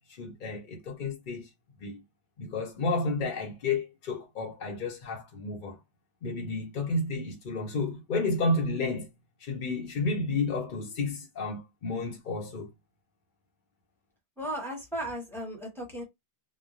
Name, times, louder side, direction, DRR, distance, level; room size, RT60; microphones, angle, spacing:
voice 1, 0.1-1.5 1.8-2.0 2.4-5.8 6.2-9.1 9.4-12.7, left 3 dB, 55° left, 0.7 m, -31 dB
voice 2, 14.4-16.0, right 1 dB, ahead, 0.9 m, -35 dB
2.9 x 2.1 x 2.4 m
omnidirectional pair, 1.1 m